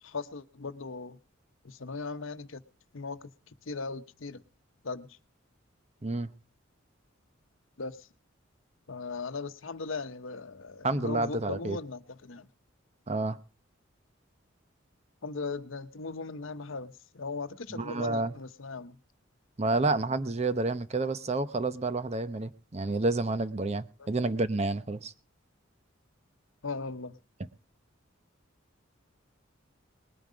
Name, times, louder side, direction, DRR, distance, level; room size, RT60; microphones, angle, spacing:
voice 1, 0.0-1.2 1.6-2.6 2.9-4.4 4.8-5.2 7.8-8.1 8.9-12.5 15.2-19.0 24.0-24.1 26.6-27.2, left 4 dB, 75° left, 0.9 m, -38 dB
voice 2, 10.8-11.8 13.1-13.4 17.7-18.3 19.6-25.1, right 2 dB, 30° right, 0.7 m, -29 dB
20.0 x 9.4 x 5.1 m
head